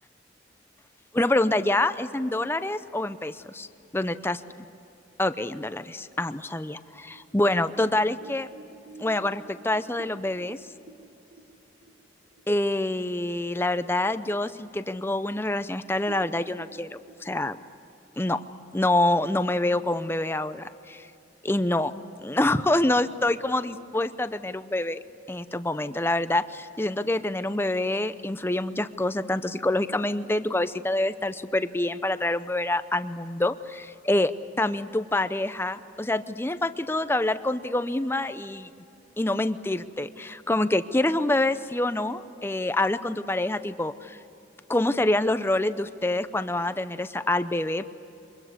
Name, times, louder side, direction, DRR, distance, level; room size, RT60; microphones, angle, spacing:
voice 1, 1.1-3.7 3.9-4.4 5.2-8.5 9.0-10.6 12.5-17.6 18.2-18.4 18.7-21.1 21.4-21.9 22.2-25.0 25.3-34.3 34.6-38.7 39.2-44.2 44.7-47.8, left 1 dB, 15° left, 12 dB, 0.6 m, -26 dB
sound 1, 6.9-12.5 12.9-13.0 13.4-13.9 14.3-14.4 15.1-15.2 15.4-15.6 16.0-17.1, right 3 dB, 50° right, 1.6 m, -50 dB
24.5 x 21.5 x 8.1 m, 2.9 s
head